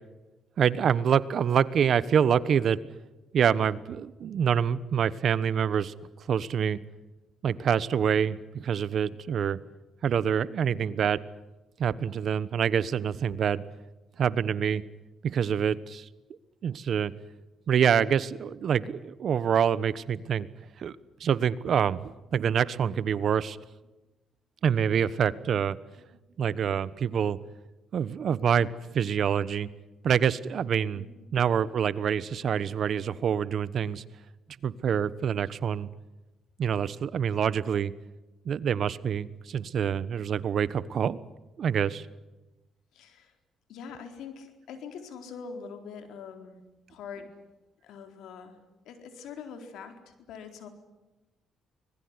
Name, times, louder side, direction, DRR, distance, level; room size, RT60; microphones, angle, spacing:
voice 1, 0.6-2.8 3.3-5.9 6.3-6.8 7.4-9.6 10.0-11.2 11.8-13.6 14.2-14.8 15.2-16.1 16.6-17.1 17.7-20.5 20.8-20.9 21.2-23.6 24.6-25.8 26.4-27.4 27.9-28.7 28.9-29.7 30.0-31.0 31.3-34.0 34.6-35.9 36.6-37.9 38.4-41.2 41.6-42.1, right 8 dB, 60° right, 17 dB, 1.2 m, -26 dB
voice 2, 42.9-43.4 43.7-46.6 46.9-47.4 47.8-48.6 48.8-50.7, left 6 dB, 85° left, 7 dB, 4.1 m, -43 dB
25.5 x 21.0 x 9.7 m, 1.1 s
cardioid pair, 90°, 0 cm